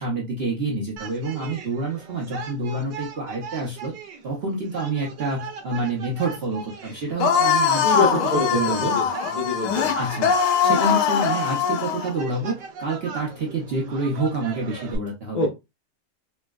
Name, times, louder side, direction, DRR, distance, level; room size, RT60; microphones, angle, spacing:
voice 1, 0.0-3.9 4.2-9.0 9.9-10.3 10.6-15.4, right 3 dB, 50° right, -2 dB, 0.7 m, -28 dB
sound 1, 1.0-15.0, right 5 dB, 80° right, 1.3 m, -39 dB
sound 2, 7.2-12.1, left 7 dB, 90° left, 1.3 m, -22 dB
voice 2, 7.8-9.9 15.3-15.5, left 3 dB, 55° left, -2 dB, 0.5 m, -26 dB
4.3 x 2.1 x 2.2 m, 0.23 s
omnidirectional pair, 1.9 m